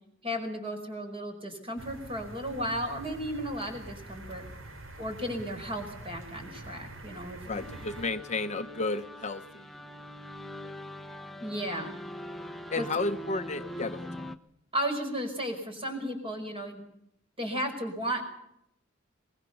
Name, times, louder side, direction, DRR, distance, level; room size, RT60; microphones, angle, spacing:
voice 1, 0.2-4.5 5.0-7.6 11.4-11.9 12.8-12.9 14.7-16.8 17.4-18.3, equal, 30° right, 5 dB, 5.5 m, -34 dB
sound 1, 1.8-8.1, right 2 dB, 75° right, 3.3 m, -45 dB
voice 2, 7.4-9.8 10.6-10.7 12.7-14.3, left 3 dB, 35° left, 8 dB, 0.8 m, -33 dB
sound 2, 7.5-14.4, equal, ahead, 0.9 m, -42 dB
23.5 x 21.0 x 7.0 m, 0.76 s
head